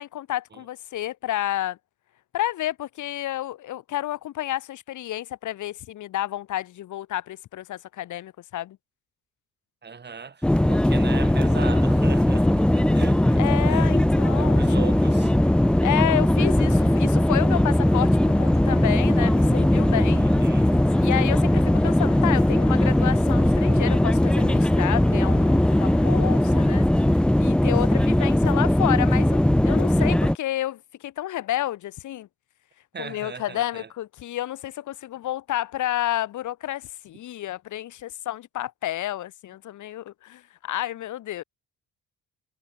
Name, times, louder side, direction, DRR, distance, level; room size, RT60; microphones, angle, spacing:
voice 1, 0.0-1.8 2.3-8.8 13.4-14.8 15.8-20.3 21.0-32.3 33.0-41.4, left 13 dB, 75° left, 2.3 m, -30 dB
voice 2, 9.8-13.9 14.4-15.3 20.2-20.7 27.9-28.4 32.9-33.9, right 5 dB, 35° right, 2.5 m, -38 dB
sound 1, 10.4-30.4, left 1 dB, 5° left, 0.5 m, -19 dB
sound 2, 10.9-26.6, left 7 dB, 45° left, 4.9 m, -42 dB
cardioid pair, 90°, 30 cm